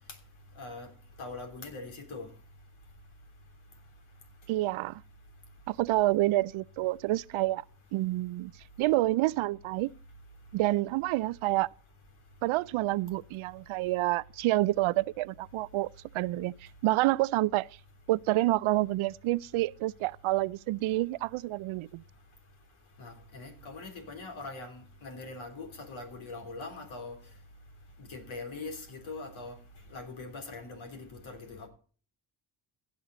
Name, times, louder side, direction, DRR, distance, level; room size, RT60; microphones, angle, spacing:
voice 1, 0.6-0.9 1.2-2.3 23.0-27.2 28.0-29.6 29.9-31.7, left 3 dB, 75° left, 3.5 m, -42 dB
voice 2, 4.5-5.0 5.7-7.6 7.9-8.5 8.8-9.9 10.5-11.7 12.4-15.9 16.1-16.5 16.8-17.7 18.1-22.0, right 17 dB, 80° right, 0.6 m, -28 dB
16.5 x 6.6 x 4.0 m
cardioid pair, 65°, 48 cm